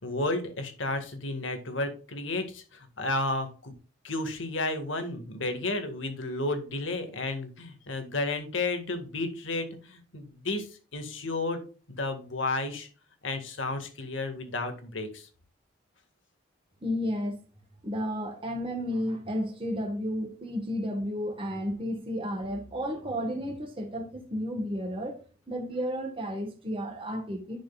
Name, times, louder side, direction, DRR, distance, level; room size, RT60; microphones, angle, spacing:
voice 1, 0.0-3.7 4.0-10.7 10.9-11.6 12.0-12.9 13.2-15.3, left 2 dB, 75° left, 1.9 m, -32 dB
voice 2, 16.8-17.4 17.8-25.2 25.5-27.6, equal, 30° right, 1.5 m, -32 dB
10.5 x 6.5 x 2.4 m
head